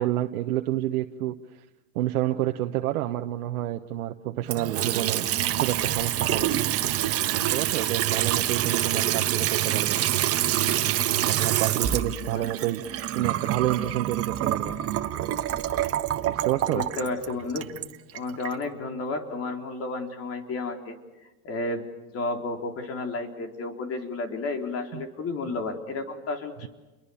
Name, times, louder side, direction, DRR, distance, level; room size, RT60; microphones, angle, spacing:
voice 1, 0.0-1.4 1.9-5.3 5.6-6.6 7.3-10.0 11.2-14.8 16.3-16.8 24.9-25.0, right 14 dB, 75° right, 5 dB, 1.3 m, -29 dB
Water tap faucet / Sink (filling or washing) / Trickle dribble, 4.4-18.6, right 12 dB, 35° right, 1.4 m, -26 dB
voice 2, 16.7-17.7 18.1-21.0 21.4-21.9 22.1-26.7, left 3 dB, 35° left, 4 dB, 3.9 m, -32 dB
30.0 x 22.5 x 7.1 m, 1.1 s
supercardioid pair, 125°, 43 cm